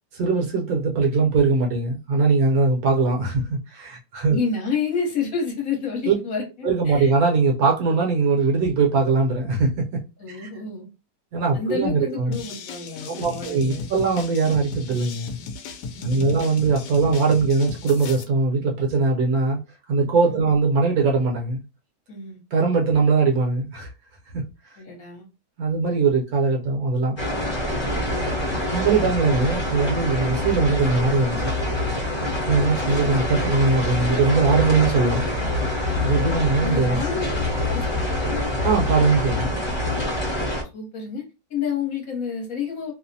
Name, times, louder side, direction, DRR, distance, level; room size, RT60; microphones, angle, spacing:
voice 1, 0.1-4.4 6.0-6.1 6.6-10.0 10.4-10.5 11.3-12.3 13.1-15.4 16.0-19.6 19.9-21.6 22.5-23.9 24.3-24.4 25.6-27.2 28.7-31.5 32.5-35.3 36.0-37.0 38.6-39.5, right 4 dB, 65° right, 1.1 m, -21 dB
voice 2, 4.3-7.1 10.2-10.9 11.5-13.9 15.9-16.4 20.3-20.5 22.1-22.4 24.8-25.3 27.8-28.2 32.8-33.2 36.6-37.2 37.7-38.4 40.7-41.2 41.5-42.9, left 5 dB, 60° left, 1.3 m, -30 dB
sound 1, 12.3-18.2, left 4 dB, 80° left, 1.2 m, -35 dB
sound 2, 27.2-40.6, left 1 dB, 20° left, 0.8 m, -25 dB
3.0 x 2.1 x 2.6 m
omnidirectional pair, 1.8 m